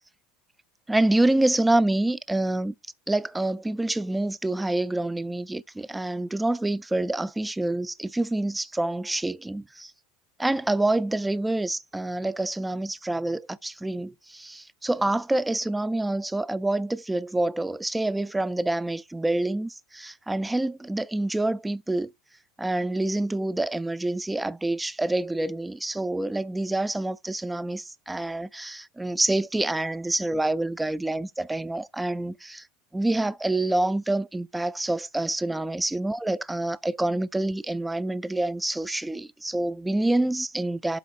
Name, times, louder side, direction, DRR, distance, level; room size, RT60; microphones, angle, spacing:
voice 1, 0.9-2.7 3.1-9.9 10.4-22.1 22.6-32.7 32.9-41.0, right 2 dB, 5° right, 0.3 m, -27 dB
11.5 x 4.0 x 2.4 m
supercardioid pair, 130°, 0 cm